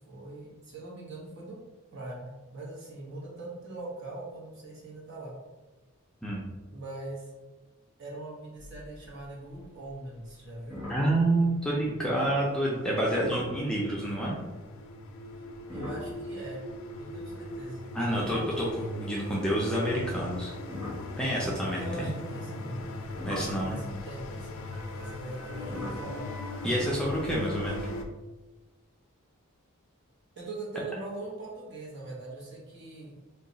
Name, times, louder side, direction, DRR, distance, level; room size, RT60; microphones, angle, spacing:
voice 1, 0.0-1.6 1.9-5.3 6.7-7.3 8.0-10.8 15.3-15.4 15.7-16.6 17.0-17.8 21.8-22.8 23.6-24.6 24.9-26.2 30.4-33.1, right 2 dB, 55° right, -4 dB, 1.0 m, -41 dB
sound 1, 8.6-9.2 9.5-9.9 10.3-10.4 10.7-12.0 13.2-13.6 15.6-19.2 19.9-22.1 22.8-28.1, left 1 dB, 15° right, 1.1 m, -42 dB
sound 2, 9.8-9.9 10.6-28.0, left 2 dB, 70° left, 0.4 m, -40 dB
voice 2, 10.9-14.4 17.9-20.5 21.2-22.1 23.3-23.8 26.6-27.8, right 1 dB, 5° left, -4 dB, 0.4 m, -28 dB
Wind instrument woodwind instrument, 24.7-28.1, right 1 dB, 75° right, 0.7 m, -49 dB
2.8 x 2.3 x 3.8 m, 1.2 s
head